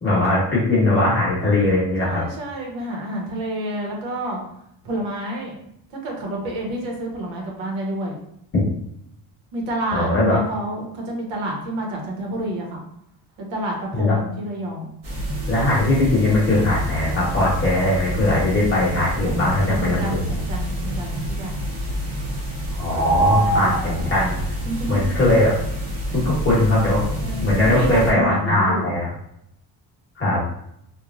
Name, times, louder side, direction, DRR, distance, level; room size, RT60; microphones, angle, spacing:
voice 1, 0.0-2.2 9.9-10.4 13.9-14.2 15.5-20.2 22.8-24.4 24.9-25.6 26.1-27.0 27.4-29.1 30.2-30.4, left 2 dB, 30° left, -7 dB, 0.9 m, -20 dB
voice 2, 2.0-4.4 4.8-5.6 6.0-8.2 9.5-12.8 13.4-14.9 19.2-21.6 23.3-24.1 24.6-25.0 27.2-29.0, right 1 dB, 80° right, 0 dB, 1.0 m, -29 dB
sound 1, 15.0-28.1, right 1 dB, 55° right, 1.1 m, -27 dB
3.0 x 2.4 x 2.4 m, 0.74 s
cardioid pair, 160°, 47 cm